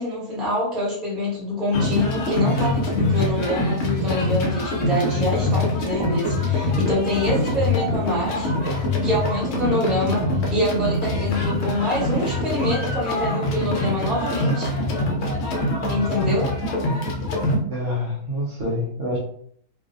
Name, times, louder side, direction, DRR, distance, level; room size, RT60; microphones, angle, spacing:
voice 1, 0.0-8.5 9.0-14.7 15.9-16.5, left 1 dB, ahead, -7 dB, 0.7 m, -25 dB
sound 1, 1.7-17.6, left 1 dB, 65° left, 0.7 m, -24 dB
sound 2, 2.9-3.7 4.5-4.6 5.2-5.5 5.8-6.2 6.9-7.0 7.6-8.3 9.4-9.5 10.0-10.2 11.1-11.3 11.7-11.8 12.1-12.5, right 2 dB, 90° right, 0.5 m, -37 dB
voice 2, 17.7-19.2, left 1 dB, 65° right, -4 dB, 0.9 m, -26 dB
2.6 x 2.0 x 2.5 m, 0.63 s
omnidirectional pair, 1.6 m